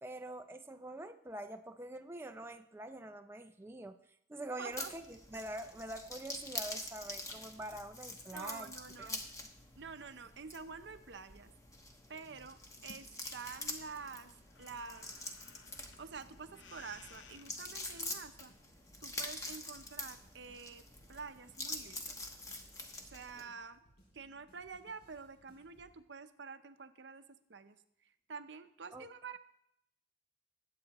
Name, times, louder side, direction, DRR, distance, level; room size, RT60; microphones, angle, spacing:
voice 1, 0.0-4.0 4.3-8.7 9.0-9.2 28.9-29.1, right 1 dB, 15° right, 6 dB, 0.4 m, -45 dB
voice 2, 4.6-4.9 8.3-9.2 9.8-11.5 12.1-14.3 14.6-15.1 16.0-18.5 19.0-22.2 23.0-23.8 24.1-27.2 27.5-29.4, right 5 dB, 70° right, 10 dB, 0.7 m, -48 dB
sound 1, 4.7-23.4, left 2 dB, 20° left, 1.1 m, -46 dB
sound 2, 12.7-18.0, left 5 dB, 85° left, 0.8 m, -60 dB
sound 3, 15.6-26.0, equal, 60° left, 5.1 m, -67 dB
20.5 x 8.4 x 3.0 m, 0.75 s
head